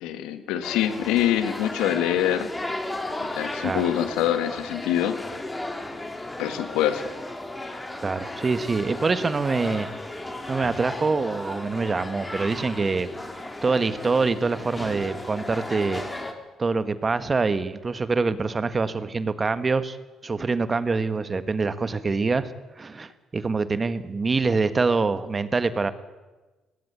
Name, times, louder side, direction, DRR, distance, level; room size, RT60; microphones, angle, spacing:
voice 1, 0.0-2.5 3.2-5.2 6.4-7.0, left 11 dB, 80° left, 10 dB, 1.7 m, -25 dB
sound 1, 0.6-16.3, left 2 dB, 15° left, 3.4 m, -35 dB
voice 2, 7.9-9.9 10.5-13.1 13.6-16.0 16.6-20.0 20.2-22.5 22.8-25.9, right 4 dB, 35° right, 12 dB, 1.5 m, -25 dB
18.5 x 17.0 x 9.5 m, 1.2 s
hypercardioid pair, 55°, 0 cm